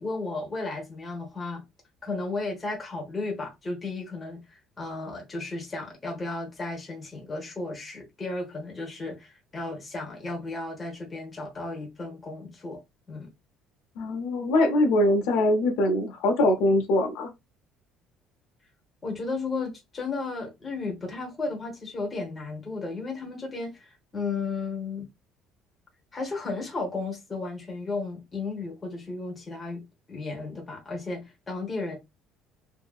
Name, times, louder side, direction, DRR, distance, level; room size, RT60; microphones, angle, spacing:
voice 1, 0.0-1.6 2.0-12.8 13.1-13.3 19.0-25.1 26.1-32.0, left 3 dB, 15° left, 1.0 m, -34 dB
voice 2, 14.0-17.3, left 1 dB, 85° left, 0.7 m, -23 dB
2.8 x 2.7 x 2.4 m
cardioid pair, 170°, 0 cm